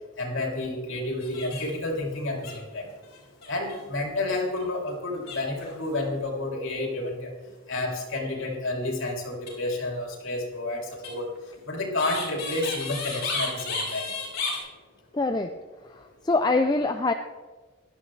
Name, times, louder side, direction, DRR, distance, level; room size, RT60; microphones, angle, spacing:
voice 1, 0.2-2.9 3.5-7.3 7.7-11.3 11.7-14.1 14.4-14.5, left 2 dB, 70° left, 0 dB, 3.2 m, -30 dB
sound 1, 1.2-1.9 2.1-2.2 2.4-3.8 4.4-4.6 5.2-6.1 9.3-9.5 11.0-14.6, left 3 dB, 50° left, 4.7 m, -33 dB
voice 2, 15.1-15.5 15.8-17.1, left 3 dB, 20° left, 6 dB, 0.4 m, -24 dB
16.5 x 12.0 x 3.3 m, 1.3 s
head